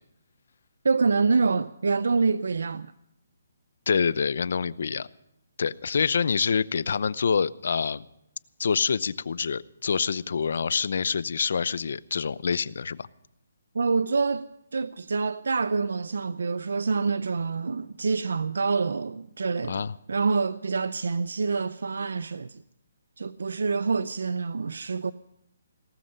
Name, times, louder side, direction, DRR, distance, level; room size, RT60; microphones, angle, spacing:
voice 1, 0.8-2.9 13.7-22.6 23.2-25.1, right 4 dB, 80° right, 0.6 m, -26 dB
voice 2, 3.9-5.1 5.6-8.0 8.6-13.1 19.7-19.9, left 6 dB, 60° left, 0.7 m, -26 dB
18.0 x 13.0 x 5.5 m
hypercardioid pair, 170°, 0 cm